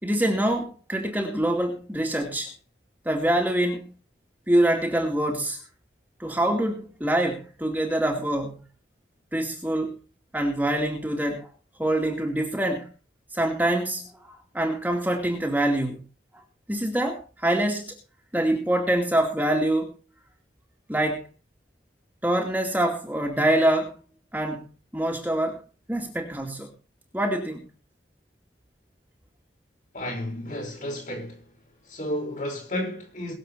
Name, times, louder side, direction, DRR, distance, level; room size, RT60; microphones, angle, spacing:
voice 1, 0.0-2.5 3.0-3.9 4.5-5.6 6.2-8.6 9.3-10.0 10.3-11.5 11.8-12.9 13.3-14.1 14.5-16.0 16.7-17.9 18.3-19.9 20.9-21.3 22.2-23.9 24.3-24.7 24.9-25.6 25.9-26.7 27.1-27.7, right 1 dB, 10° right, 2.4 m, -25 dB
voice 2, 29.9-31.5 31.8-33.3, left 1 dB, 45° left, 5.5 m, -32 dB
22.0 x 7.7 x 4.3 m
head